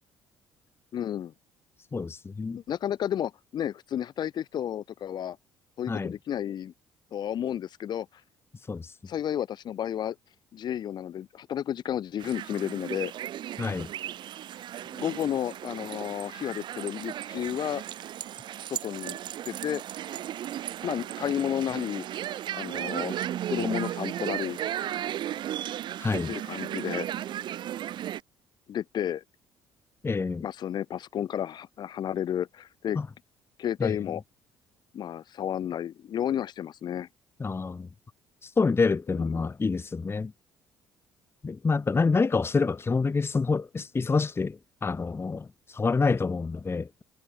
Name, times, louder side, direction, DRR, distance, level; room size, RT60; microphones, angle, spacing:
voice 1, 0.9-1.3 2.5-5.4 5.8-6.7 7.1-8.1 9.1-10.2 10.5-13.1 14.9-17.8 18.7-19.2 19.5-19.8 20.8-22.1 22.6-23.2 23.5-24.6 26.3-27.1 28.7-29.2 30.4-33.0 33.6-34.2 34.9-37.1 39.1-39.5, left 10 dB, 50° left, 1.9 m, -32 dB
voice 2, 1.9-2.6 5.9-6.1 8.7-8.9 13.6-13.9 26.0-26.3 30.0-30.4 32.9-33.1 33.8-34.0 37.4-37.9 38.4-40.3 41.4-47.0, left 4 dB, 25° left, 1.4 m, -27 dB
sound 1, 12.2-28.2, right 11 dB, 55° right, 2.5 m, -35 dB
figure-of-eight pair, 50°, 9 cm